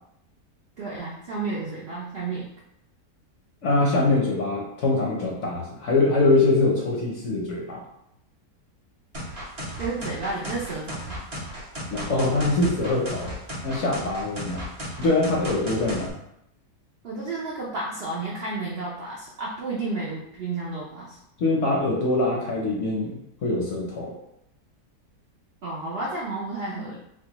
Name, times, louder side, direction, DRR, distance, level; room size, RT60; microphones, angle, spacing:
voice 1, 0.8-2.5 9.8-11.2 17.0-21.2 25.6-27.0, right 3 dB, 90° right, -4 dB, 0.5 m, -31 dB
voice 2, 3.6-7.8 11.9-13.3 13.6-14.6 15.0-16.1 21.4-24.1, left 2 dB, 65° left, -2 dB, 0.8 m, -23 dB
sound 1, 9.1-16.1, equal, 35° right, 0.5 m, -35 dB
4.0 x 2.2 x 2.9 m, 0.81 s
omnidirectional pair, 1.8 m